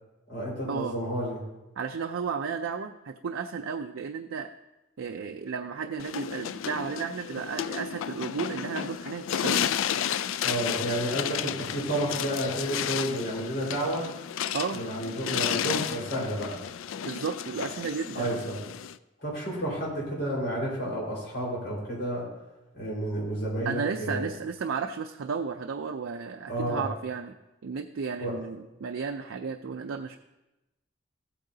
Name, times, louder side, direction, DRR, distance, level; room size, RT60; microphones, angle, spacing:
voice 1, 0.3-1.4 10.4-14.0 14.7-16.6 18.1-18.6 19.2-22.2 22.7-24.3 26.5-26.9 28.2-28.4, right 1 dB, 50° left, -5 dB, 4.2 m, -31 dB
voice 2, 1.8-4.5 5.0-9.7 14.5-14.8 17.0-18.3 23.7-27.3 27.6-30.2, right 5 dB, 80° right, 5 dB, 0.4 m, -33 dB
sound 1, 6.0-19.0, left 9 dB, 75° left, 0.3 m, -32 dB
15.0 x 8.6 x 2.8 m, 1.0 s
head